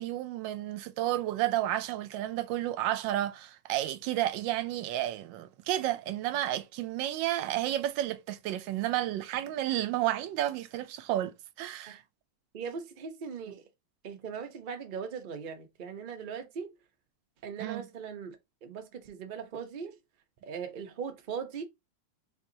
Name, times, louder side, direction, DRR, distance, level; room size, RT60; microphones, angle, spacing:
voice 1, 0.0-12.0 17.6-17.8, right 13 dB, 85° right, 1.3 m, -31 dB
voice 2, 12.5-13.6 14.0-16.8 17.4-18.4 18.6-20.0 20.4-21.6, right 6 dB, 55° right, 0.5 m, -39 dB
3.9 x 3.5 x 2.7 m
omnidirectional pair, 2.0 m